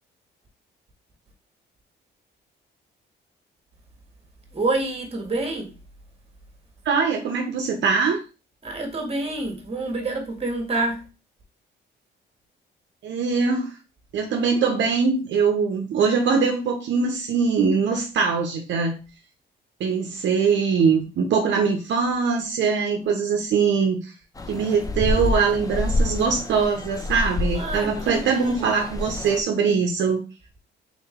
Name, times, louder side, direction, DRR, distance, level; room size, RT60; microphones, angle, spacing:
voice 1, 4.5-5.7 8.6-11.0 27.5-28.7, right 2 dB, 30° right, 1.6 m, -27 dB
voice 2, 6.8-8.2 13.0-13.7 14.1-19.0 19.8-24.1 24.5-30.2, right 5 dB, 65° right, 0.8 m, -22 dB
sound 1, 24.4-29.4, left 2 dB, 15° left, 0.6 m, -28 dB
3.8 x 3.1 x 3.6 m
cardioid pair, 90°, 20 cm